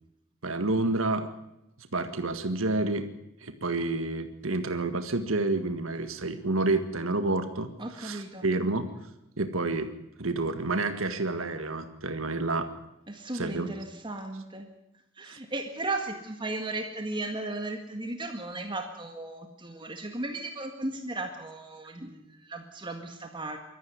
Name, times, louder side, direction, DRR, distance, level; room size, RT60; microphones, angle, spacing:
voice 1, 0.4-1.3 1.9-3.1 3.4-7.7 8.0-8.9 9.4-9.9 10.2-12.7 13.3-13.7 15.2-15.4, right 2 dB, 75° right, 8 dB, 1.7 m, -29 dB
voice 2, 7.8-8.5 13.1-14.7 15.2-23.6, right 2 dB, 25° right, 4 dB, 1.8 m, -36 dB
23.0 x 14.0 x 9.5 m, 0.89 s
head